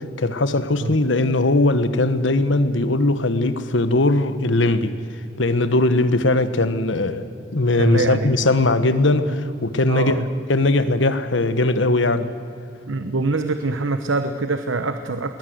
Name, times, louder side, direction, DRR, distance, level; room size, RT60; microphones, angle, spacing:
voice 1, 0.2-5.0 5.4-7.3 7.5-10.2 10.5-12.3, left 2 dB, 75° left, 11 dB, 1.2 m, -19 dB
voice 2, 7.7-8.5 9.9-10.3 12.9-15.4, right 3 dB, 80° right, 9 dB, 0.9 m, -24 dB
21.0 x 19.5 x 8.0 m, 2.8 s
head